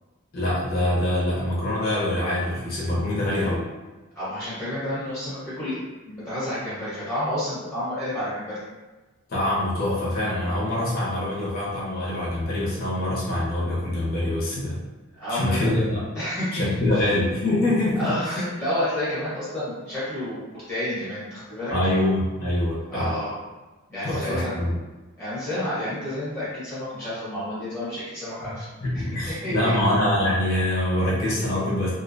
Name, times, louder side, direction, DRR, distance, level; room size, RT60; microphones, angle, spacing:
voice 1, 0.3-3.7 9.3-14.8 15.3-16.0 16.5-18.4 21.7-23.2 24.0-24.8 28.4-28.5 28.8-31.9, left 1 dB, 45° left, -7 dB, 0.7 m, -24 dB
voice 2, 4.1-8.6 15.1-15.8 16.1-16.6 17.0-17.1 18.0-21.7 22.9-23.4 23.9-24.5 25.2-28.7 29.3-29.7, left 1 dB, 10° left, -11 dB, 1.0 m, -30 dB
2.5 x 2.1 x 2.5 m, 1.2 s
head